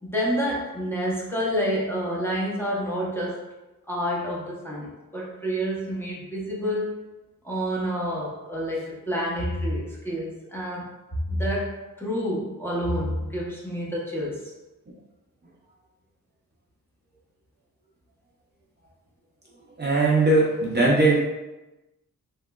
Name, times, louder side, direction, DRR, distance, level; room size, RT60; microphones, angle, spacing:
voice 1, 0.0-3.4 3.9-6.9 7.4-10.9 11.3-14.5, equal, 5° left, -5 dB, 0.7 m, -28 dB
voice 2, 19.8-21.2, right 2 dB, 30° right, -5 dB, 0.5 m, -19 dB
3.1 x 2.9 x 2.2 m, 1.1 s
wide cardioid pair, 100°, 35 cm